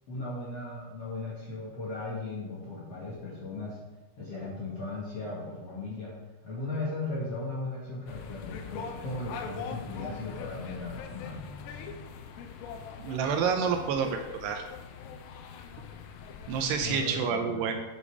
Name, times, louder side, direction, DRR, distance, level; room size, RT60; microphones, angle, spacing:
voice 1, 0.1-3.8 4.2-6.1 6.4-11.4 16.8-17.7, left 2 dB, 50° left, -6 dB, 1.9 m, -37 dB
sound 1, 8.1-17.1, left 6 dB, 80° left, 2.8 m, -42 dB
voice 2, 13.0-14.6 16.5-17.8, right 6 dB, 80° right, 5 dB, 2.6 m, -29 dB
8.5 x 7.1 x 4.9 m, 1.1 s
omnidirectional pair, 5.1 m